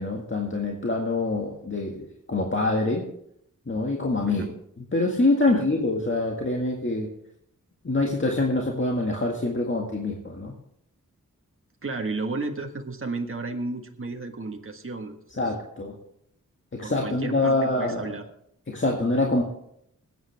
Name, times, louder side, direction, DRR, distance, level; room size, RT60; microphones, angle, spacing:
voice 1, 0.0-3.1 3.7-4.4 4.9-7.1 7.8-10.5 15.4-15.9 16.7-18.2 18.7-19.4, left 2 dB, 35° left, 0 dB, 1.9 m, -25 dB
voice 2, 11.8-15.5 16.8-18.2, right 3 dB, 40° right, 3 dB, 1.6 m, -33 dB
20.5 x 9.0 x 3.5 m, 0.73 s
wide cardioid pair, 65°, 33 cm